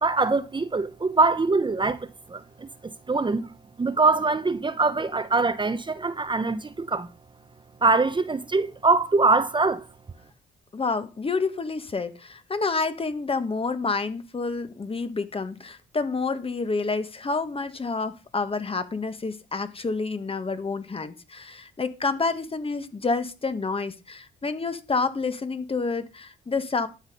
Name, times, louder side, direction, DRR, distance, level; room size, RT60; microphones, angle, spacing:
voice 1, 0.0-3.4 3.8-7.1 7.8-9.9, right 3 dB, 25° right, 1.0 m, -23 dB
voice 2, 10.7-26.9, left 4 dB, 30° left, 1.5 m, -28 dB
12.5 x 8.2 x 5.4 m
cardioid pair, 90°, 20 cm